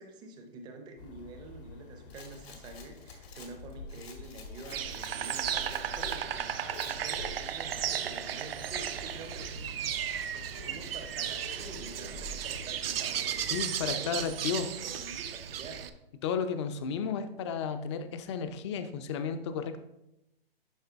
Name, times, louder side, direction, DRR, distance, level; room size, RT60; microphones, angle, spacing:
voice 1, 0.0-15.8, right 3 dB, 15° right, 5 dB, 0.6 m, -47 dB
sound 1, 1.0-14.3, left 3 dB, 60° left, 0.9 m, -48 dB
Rattle, 2.1-6.2 6.7-7.0, left 5 dB, 85° left, 1.8 m, -52 dB
Insect, 4.7-15.9, right 9 dB, 70° right, 0.7 m, -35 dB
voice 2, 13.5-14.7 16.2-19.8, left 6 dB, 30° left, 9 dB, 0.5 m, -33 dB
11.0 x 3.8 x 3.5 m, 0.86 s
hypercardioid pair, 145°, 30 cm